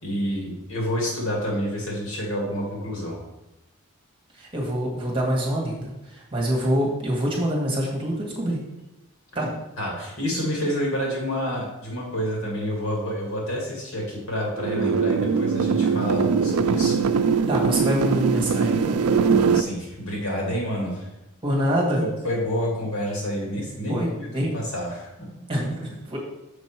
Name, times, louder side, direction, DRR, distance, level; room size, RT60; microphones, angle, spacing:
voice 1, 0.0-3.2 9.8-17.0 19.3-21.1 22.0-25.4, equal, 75° left, -2 dB, 2.5 m, -28 dB
voice 2, 4.3-8.6 9.3-9.5 17.5-19.0 21.4-22.0 23.9-24.6 25.5-26.2, equal, 25° right, -2 dB, 1.6 m, -25 dB
sound 1, 14.6-19.6, right 5 dB, 90° right, 0.4 m, -21 dB
6.5 x 5.3 x 4.5 m, 0.95 s
head